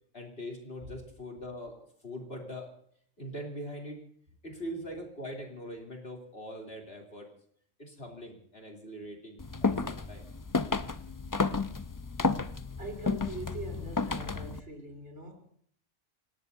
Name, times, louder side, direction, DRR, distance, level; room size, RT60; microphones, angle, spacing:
voice 1, 0.1-2.7 3.2-4.0 4.4-7.3 7.8-10.2, equal, 50° left, 0 dB, 3.5 m, -42 dB
sound 1, 9.4-14.6, left 4 dB, 30° left, 0.3 m, -32 dB
voice 2, 12.8-15.5, right 2 dB, 60° right, 1 dB, 4.1 m, -42 dB
28.0 x 18.0 x 2.7 m, 0.63 s
omnidirectional pair, 1.3 m